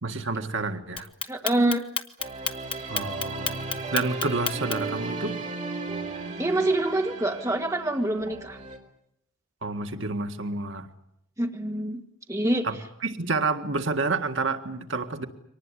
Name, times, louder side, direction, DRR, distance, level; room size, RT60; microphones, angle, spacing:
voice 1, 0.0-1.1 2.9-5.3 9.6-10.9 12.6-15.3, right 3 dB, 70° right, 6 dB, 1.8 m, -29 dB
Clock, 1.0-5.0, left 7 dB, 25° left, 1.1 m, -30 dB
voice 2, 1.3-1.8 2.8-2.9 6.4-8.6 11.4-12.0 12.3-12.7, right 1 dB, 15° right, 3 dB, 1.8 m, -25 dB
sound 1, 2.2-8.8, right 3 dB, 40° right, 3.5 m, -35 dB
24.5 x 19.0 x 9.8 m, 0.77 s
head